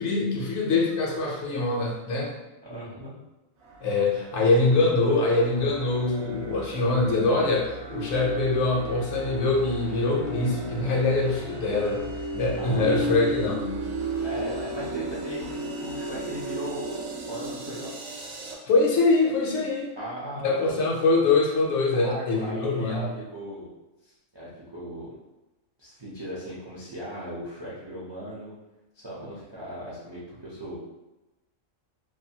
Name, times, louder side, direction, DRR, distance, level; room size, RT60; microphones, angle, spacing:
voice 1, 0.0-2.3 3.8-12.0 12.3-13.7 18.7-19.9 20.4-23.1, left 3 dB, 65° left, -2 dB, 0.9 m, -24 dB
voice 2, 2.6-3.1 12.6-13.2 14.2-17.9 20.0-20.6 21.9-23.7 24.3-25.1 25.8-28.5 28.9-30.8, equal, 40° right, -8 dB, 0.3 m, -37 dB
sound 1, 3.6-18.5, right 2 dB, 85° right, 1.0 m, -35 dB
2.6 x 2.4 x 2.7 m, 1.0 s
omnidirectional pair, 1.4 m